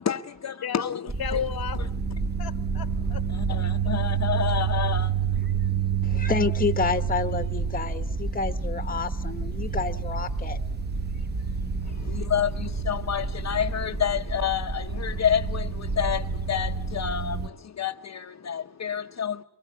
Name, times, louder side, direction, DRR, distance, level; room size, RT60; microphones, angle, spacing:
voice 1, 0.0-1.0 1.3-1.4 3.3-5.1 11.9-19.4, left 8 dB, 45° left, 0.8 m, -29 dB
voice 2, 0.6-1.8 2.4-3.2, left 8 dB, 70° left, 1.2 m, -33 dB
sound 1, 1.1-17.5, right 6 dB, 25° right, 0.8 m, -28 dB
voice 3, 6.0-10.6 12.0-12.1, left 5 dB, 20° left, 1.0 m, -29 dB
23.5 x 21.0 x 8.1 m
wide cardioid pair, 110°, 38 cm